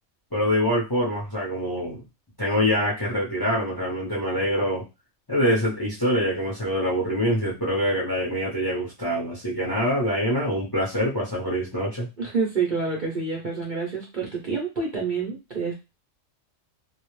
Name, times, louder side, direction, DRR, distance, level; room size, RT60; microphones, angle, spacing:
voice 1, 0.3-2.0 2.4-4.8 5.3-12.1, equal, 25° left, -5 dB, 0.6 m, -25 dB
voice 2, 12.2-15.7, right 4 dB, 45° right, -2 dB, 0.6 m, -28 dB
2.3 x 2.0 x 3.0 m, 0.26 s
omnidirectional pair, 1.4 m